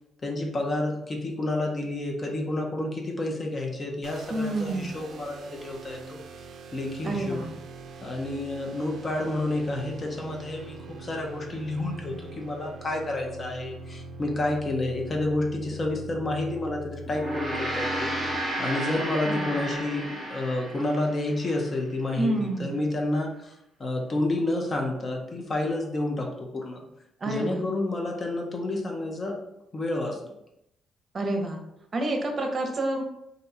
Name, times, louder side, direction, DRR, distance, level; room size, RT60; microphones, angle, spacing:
voice 1, 0.2-6.2 6.7-7.5 8.0-18.1 18.6-23.5 23.8-26.8 27.3-29.4 29.7-30.2, left 2 dB, 35° left, 1 dB, 0.7 m, -30 dB
sound 1, 4.0-18.4, right 2 dB, 65° right, 0.4 m, -43 dB
voice 2, 4.3-5.0 7.0-7.5 19.3-19.5 22.2-22.7 27.2-27.6 31.1-31.6 31.9-33.0, right 2 dB, 35° right, 3 dB, 0.7 m, -28 dB
Gong, 17.0-21.7, right 1 dB, 10° right, 0.9 m, -32 dB
2.6 x 2.2 x 4.1 m, 0.80 s
cardioid pair, 90°, 0 cm